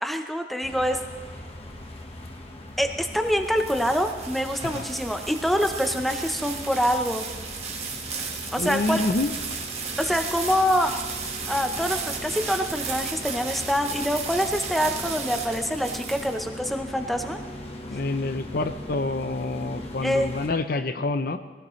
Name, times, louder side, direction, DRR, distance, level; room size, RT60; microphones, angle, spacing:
voice 1, 0.0-1.0 2.8-7.3 8.5-9.0 10.0-11.0 11.5-17.4 20.0-20.3, equal, ahead, 5 dB, 0.7 m, -25 dB
sound 1, 0.6-20.5, left 1 dB, 35° left, 1.2 m, -40 dB
sound 2, 2.9-16.7, right 5 dB, 35° right, 1.6 m, -35 dB
voice 2, 8.6-9.3 17.9-21.4, left 2 dB, 55° left, 10 dB, 0.6 m, -27 dB
20.0 x 16.0 x 3.2 m, 1.4 s
head